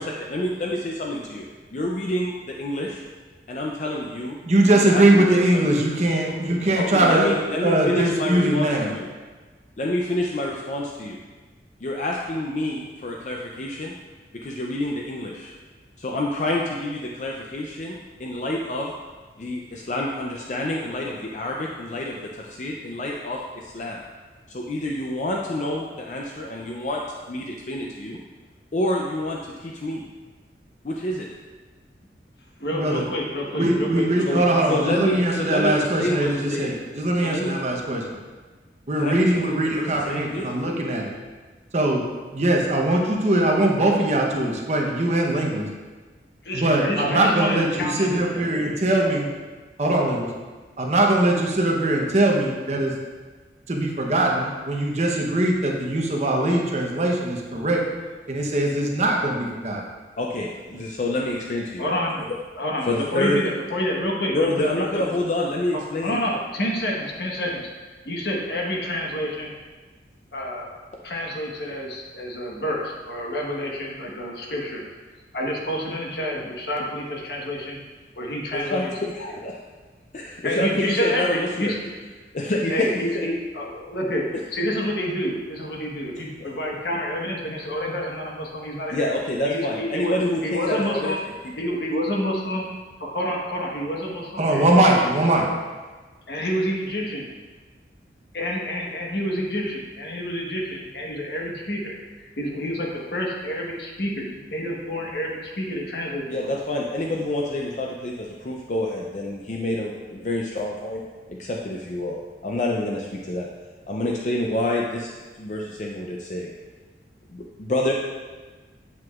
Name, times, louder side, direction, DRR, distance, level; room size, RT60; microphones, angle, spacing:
voice 1, 0.0-1.4 1.7-3.0 3.5-4.4 4.7-5.3 5.5-5.6 6.7-9.1 9.8-11.2 11.8-13.9 14.4-15.5 16.0-18.9 19.4-24.0 24.5-27.0 27.3-28.2 28.7-30.0 30.8-31.3 34.2-34.4 34.7-36.7 37.2-37.6 39.0-40.5 60.2-61.9 62.8-63.4 64.3-66.2 78.5-79.6 80.1-81.7 82.3-82.9 83.1-83.2 88.9-91.1 106.3-111.0 111.3-112.2 112.4-113.5 113.9-115.1 115.4-116.5 117.3-117.9, left 1 dB, 40° left, -1 dB, 0.5 m, -27 dB
voice 2, 4.5-7.3 7.6-8.9 32.7-33.1 33.5-38.0 38.9-41.1 41.7-42.0 42.3-45.7 46.5-49.3 49.8-50.3 50.8-52.9 53.7-57.8 58.3-59.8 94.4-95.5, right 1 dB, 40° right, 0 dB, 0.9 m, -21 dB
voice 3, 32.6-34.5 46.4-48.1 61.8-62.2 62.6-65.0 65.7-67.7 68.0-69.6 70.3-70.7 71.0-74.8 75.3-77.8 78.2-78.9 80.4-81.9 82.7-89.2 89.5-90.1 90.4-91.2 91.6-92.6 93.0-95.3 96.3-97.2 98.3-106.6, equal, 65° left, -2 dB, 1.3 m, -28 dB
7.9 x 7.5 x 2.4 m, 1.3 s
head